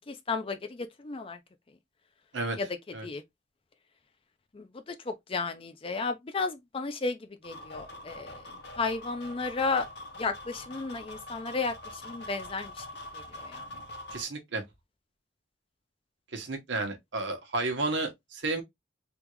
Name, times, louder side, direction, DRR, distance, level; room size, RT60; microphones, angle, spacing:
voice 1, 0.1-1.4 2.6-2.7 3.0-3.2 4.5-8.5 8.8-9.9 10.2-12.8 13.1-13.6, left 4 dB, 30° left, 0.4 m, -33 dB
sound 1, 7.4-14.2, left 1 dB, 60° left, 0.9 m, -44 dB
voice 2, 14.1-14.6 16.3-18.6, right 2 dB, 70° right, 1.0 m, -32 dB
3.5 x 2.3 x 2.9 m
head